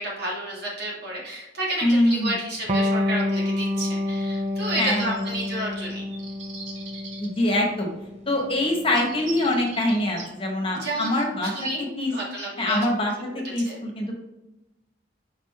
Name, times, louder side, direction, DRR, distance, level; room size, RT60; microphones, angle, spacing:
voice 1, 0.0-6.1 10.7-12.8 13.3-13.8, right 1 dB, 60° right, -4 dB, 2.1 m, -31 dB
voice 2, 1.8-2.3 4.8-5.1 7.2-7.9 8.3-11.5 11.8-12.1 12.6-14.2, left 1 dB, 30° left, 0 dB, 1.3 m, -24 dB
Electric guitar, 2.7-9.8, left 1 dB, 35° right, 0.6 m, -28 dB
sound 1, 4.2-5.7 6.1-7.4 8.6-8.7 9.0-10.3, right 4 dB, 75° right, 1.3 m, -41 dB
5.0 x 4.5 x 4.3 m, 0.97 s
head